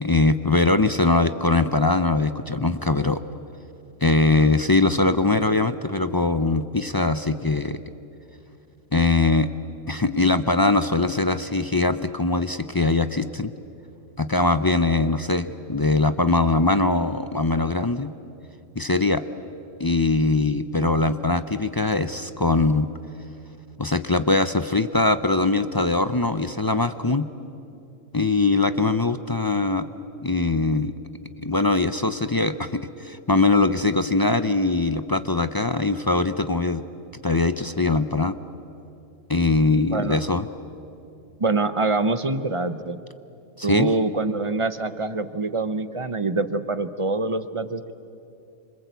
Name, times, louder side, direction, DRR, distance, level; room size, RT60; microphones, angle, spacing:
voice 1, 0.0-3.2 4.0-7.8 8.9-9.5 9.9-13.5 14.2-18.1 18.8-19.2 19.8-22.9 23.8-27.3 28.1-29.9 30.2-30.9 31.4-36.8 37.2-38.4 39.3-40.5 43.6-43.9, left 3 dB, 30° left, 11 dB, 0.4 m, -21 dB
voice 2, 41.4-43.0 43.6-47.9, right 3 dB, 30° right, 12 dB, 0.7 m, -25 dB
28.0 x 25.5 x 8.2 m, 2.7 s
omnidirectional pair, 1.3 m